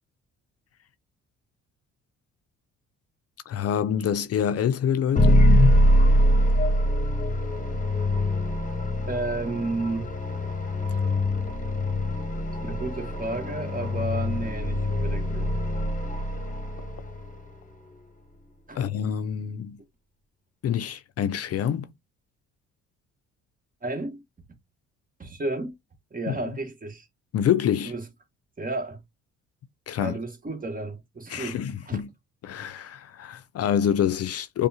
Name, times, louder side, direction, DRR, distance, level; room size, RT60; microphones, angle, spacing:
voice 1, 3.5-5.5 18.7-19.8 20.6-21.9 26.3-26.4 27.3-27.9 29.9-30.2 31.3-32.1 32.4-34.7, left 9 dB, 55° left, 0.5 m, -26 dB
sound 1, 5.2-17.3, left 1 dB, 25° left, 1.0 m, -23 dB
voice 2, 9.1-10.1 12.6-15.6 18.7-18.8 23.8-24.2 25.2-25.7 26.1-27.1 27.8-28.1 28.6-29.0 30.0-32.0, right 2 dB, 30° right, 1.4 m, -32 dB
5.2 x 2.2 x 2.8 m
supercardioid pair, 65°, 30 cm